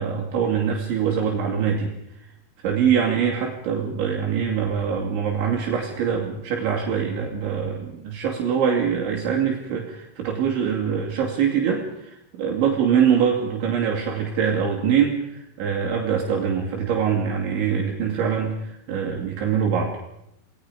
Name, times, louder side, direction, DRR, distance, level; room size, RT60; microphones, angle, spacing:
voice 1, 0.0-1.9 2.6-19.9, right 7 dB, 75° right, -1 dB, 5.0 m, -23 dB
28.5 x 19.5 x 5.1 m, 0.79 s
omnidirectional pair, 5.5 m